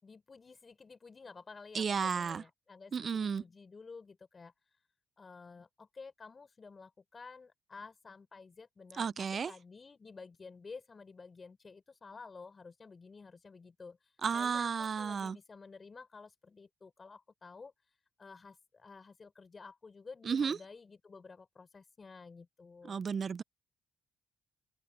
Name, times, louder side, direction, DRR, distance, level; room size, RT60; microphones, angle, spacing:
voice 1, 0.0-4.9 5.2-23.1, left 4 dB, 35° left, 4.2 m, -52 dB
voice 2, 1.7-2.4 2.9-3.4 9.0-9.5 14.2-15.4 20.3-20.6 22.9-23.4, right 6 dB, 45° right, 0.4 m, -33 dB
open air
cardioid pair, 90°, 0 cm